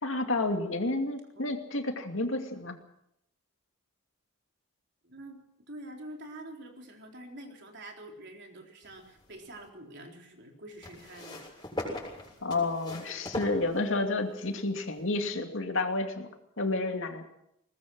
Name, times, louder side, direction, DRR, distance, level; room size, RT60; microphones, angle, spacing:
voice 1, 0.0-2.8 12.4-16.3 16.6-17.2, left 2 dB, 65° left, 5 dB, 2.6 m, -30 dB
voice 2, 5.0-11.4, right 1 dB, 55° right, 2 dB, 4.0 m, -46 dB
sound 1, 8.8-9.7 10.8-14.3 15.2-15.3, left 1 dB, 20° left, 7.1 m, -40 dB
21.0 x 20.0 x 6.3 m, 0.77 s
head